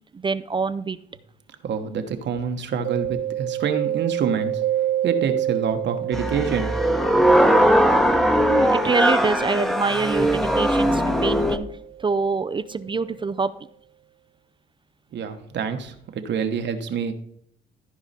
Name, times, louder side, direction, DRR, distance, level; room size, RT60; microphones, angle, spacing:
voice 1, 0.1-1.0 8.5-11.7 12.0-13.5, right 4 dB, 25° right, 13 dB, 0.4 m, -25 dB
voice 2, 1.6-4.6 5.0-6.7 15.1-17.1, right 6 dB, 65° right, 7 dB, 1.2 m, -27 dB
Mallet percussion, 2.8-12.4, right 12 dB, 85° right, 0.5 m, -29 dB
sound 1, 6.1-11.6, equal, ahead, 0.9 m, -19 dB
14.5 x 4.8 x 4.2 m, 0.70 s
cardioid pair, 90°, 20 cm